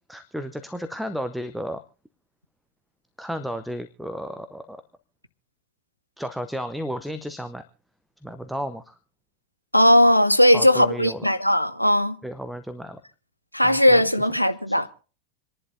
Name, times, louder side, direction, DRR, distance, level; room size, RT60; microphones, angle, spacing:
voice 1, 0.1-1.8 3.2-4.8 6.2-7.6 8.2-9.0 10.5-11.3 12.2-13.0 13.6-14.3 14.7-14.8, equal, ahead, 0.8 m, -33 dB
voice 2, 9.7-12.2 13.5-14.9, left 1 dB, 90° left, 0.7 m, -18 dB
27.5 x 11.0 x 2.7 m
figure-of-eight pair, 90°, 0 cm